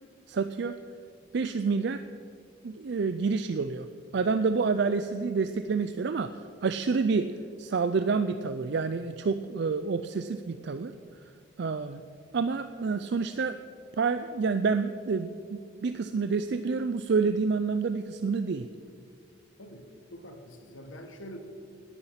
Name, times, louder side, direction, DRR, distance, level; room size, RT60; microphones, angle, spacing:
voice 1, 0.3-0.8 1.3-2.0 2.6-3.9 4.1-7.3 7.6-10.9 11.6-12.0 12.3-13.6 14.0-18.7, right 4 dB, 60° right, 10 dB, 0.4 m, -28 dB
voice 2, 19.6-21.4, equal, 80° left, 5 dB, 1.5 m, -45 dB
18.0 x 9.6 x 5.8 m, 2.4 s
head